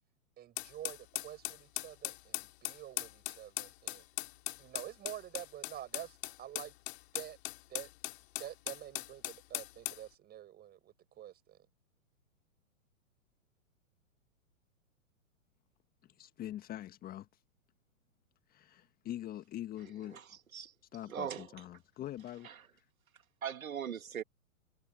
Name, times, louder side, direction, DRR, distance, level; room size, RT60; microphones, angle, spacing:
voice 1, 0.4-4.1 4.6-6.7 7.1-7.4 7.7-7.9 8.4-11.7, right 11 dB, 25° right, 5.0 m, -48 dB
sound 1, 0.6-10.0, left 18 dB, 50° left, 4.8 m, -40 dB
voice 2, 16.2-17.3 18.5-20.2 20.9-22.8, left 12 dB, 20° left, 1.5 m, -44 dB
voice 3, 21.1-21.5 22.4-22.5 23.4-24.2, right 8 dB, 80° right, 2.2 m, -39 dB
hypercardioid pair, 125°, 41 cm